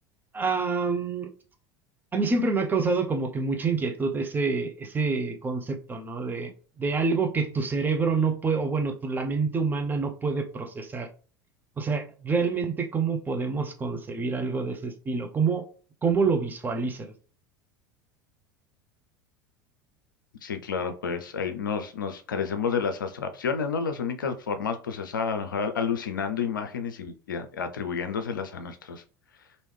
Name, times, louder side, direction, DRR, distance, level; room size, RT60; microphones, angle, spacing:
voice 1, 0.3-1.3 2.1-6.5 6.8-11.1 11.8-15.6 16.0-17.1, right 4 dB, 15° right, 4 dB, 0.7 m, -27 dB
voice 2, 20.4-29.0, left 6 dB, 75° left, 8 dB, 0.4 m, -30 dB
3.0 x 2.7 x 3.2 m, 0.38 s
figure-of-eight pair, 75°, 11 cm